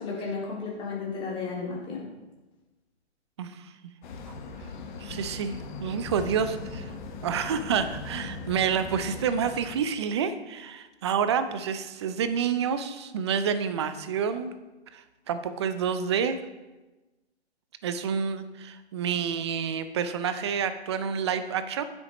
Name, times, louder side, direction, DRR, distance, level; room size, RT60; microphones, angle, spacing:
voice 1, 0.0-2.1, left 4 dB, 15° left, -4 dB, 2.1 m, -33 dB
voice 2, 3.4-3.7 5.0-6.9 7.2-14.5 14.9-16.4 17.8-21.8, right 7 dB, 25° right, 11 dB, 0.4 m, -28 dB
sound 1, 4.0-9.8, left 4 dB, 45° left, 1.2 m, -39 dB
9.6 x 7.7 x 3.0 m, 1.1 s
figure-of-eight pair, 135°, 34 cm